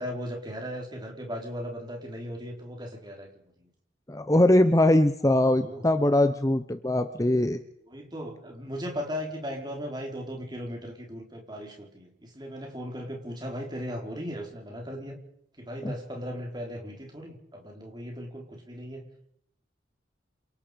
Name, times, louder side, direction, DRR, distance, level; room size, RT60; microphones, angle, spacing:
voice 1, 0.0-3.3 3.6-3.7 5.6-5.8 7.9-15.2 15.6-19.1, equal, 25° right, 1 dB, 4.3 m, -37 dB
voice 2, 4.1-7.6 15.8-15.9, left 1 dB, 20° left, 10 dB, 0.8 m, -22 dB
27.5 x 18.5 x 5.2 m, 0.71 s
head